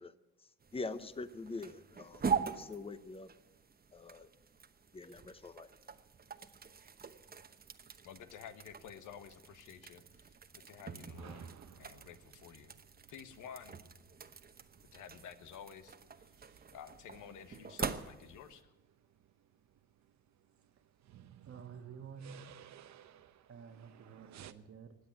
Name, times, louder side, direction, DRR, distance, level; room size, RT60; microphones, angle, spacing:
voice 1, 0.0-3.3 3.9-4.3 4.9-5.7, left 3 dB, 20° left, 0.8 m, -45 dB
sound 1, 0.6-18.6, right 6 dB, 30° right, 1.0 m, -44 dB
voice 2, 8.0-10.3 10.7-12.7 13.1-13.8 14.9-16.3 16.7-18.7, left 8 dB, 85° left, 1.3 m, -52 dB
sound 2, 11.0-24.5, right 10 dB, 65° right, 0.9 m, -60 dB
voice 3, 21.4-22.7 23.5-24.9, right 6 dB, 50° right, 1.3 m, -51 dB
20.0 x 7.9 x 8.7 m
cardioid pair, 90°, 30 cm